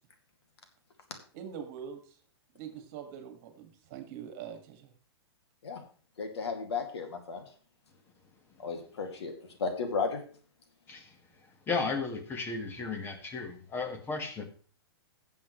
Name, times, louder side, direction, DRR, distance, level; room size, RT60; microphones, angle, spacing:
voice 1, 1.3-2.2 2.5-4.9, right 8 dB, 40° right, 2.1 m, -43 dB
voice 2, 6.2-7.4 8.6-9.3 9.6-10.2, left 4 dB, 85° left, 2.5 m, -34 dB
voice 3, 11.7-14.4, left 4 dB, 15° left, 1.6 m, -34 dB
15.5 x 7.3 x 3.2 m
hypercardioid pair, 145°, 14 cm